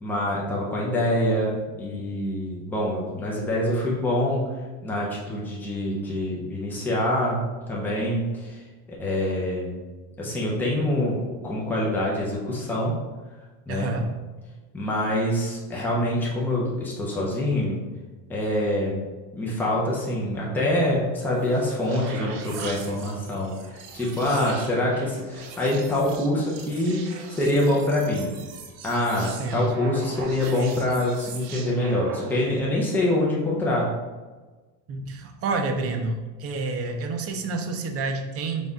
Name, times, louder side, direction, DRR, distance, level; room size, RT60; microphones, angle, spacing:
voice 1, 0.0-7.4 7.7-8.6 9.0-9.8 10.2-12.9 13.7-13.9 14.7-17.8 18.3-19.0 19.3-28.3 28.8-33.9, left 1 dB, 5° left, -4 dB, 0.8 m, -25 dB
voice 2, 13.7-14.1 29.4-29.6 34.9-38.7, right 3 dB, 30° right, 5 dB, 0.5 m, -29 dB
sound 1, 21.2-32.6, right 5 dB, 75° right, 0.9 m, -41 dB
4.1 x 3.4 x 3.6 m, 1.3 s
supercardioid pair, 130°, 48 cm